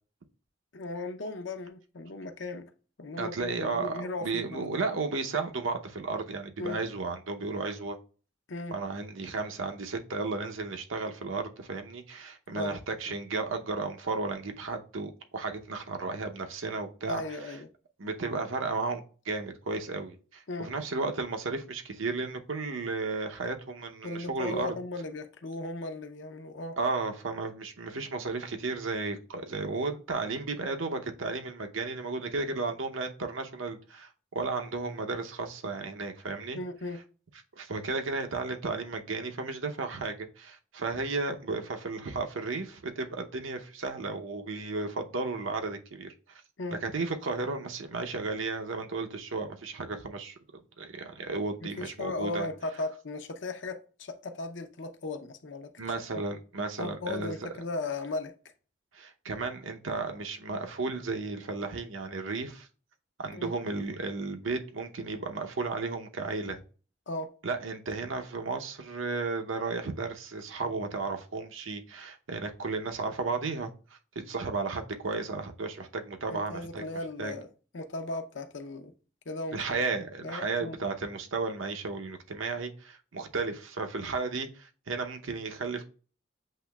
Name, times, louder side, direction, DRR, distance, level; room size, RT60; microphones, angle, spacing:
voice 1, 0.7-2.7 3.0-4.8 6.6-6.8 8.5-8.8 12.5-12.8 17.1-17.7 20.5-20.7 24.0-26.8 36.5-37.0 46.6-46.8 51.6-55.7 56.8-58.3 63.3-63.5 67.1-67.3 76.3-77.5 77.7-78.9 79.3-79.8 80.2-80.8, left 2 dB, 70° left, 0.7 m, -37 dB
voice 2, 3.2-8.0 8.7-17.6 18.0-24.8 26.8-36.6 37.6-46.4 46.7-52.5 55.8-57.5 58.9-62.7 63.2-66.6 67.4-73.7 74.1-76.8 77.2-77.3 79.5-85.9, right 3 dB, 80° right, 0.8 m, -34 dB
7.6 x 3.0 x 2.3 m
head